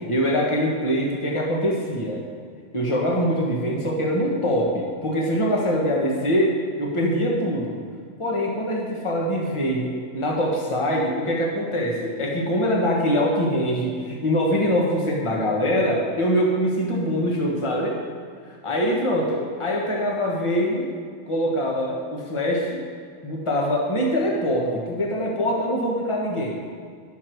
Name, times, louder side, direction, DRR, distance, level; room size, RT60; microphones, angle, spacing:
voice 1, 0.1-2.2 2.7-7.8 8.2-17.9 18.6-20.9 21.3-22.8 23.2-26.6, equal, 25° left, -2 dB, 1.3 m, -23 dB
11.0 x 6.6 x 4.6 m, 2.2 s
omnidirectional pair, 1.4 m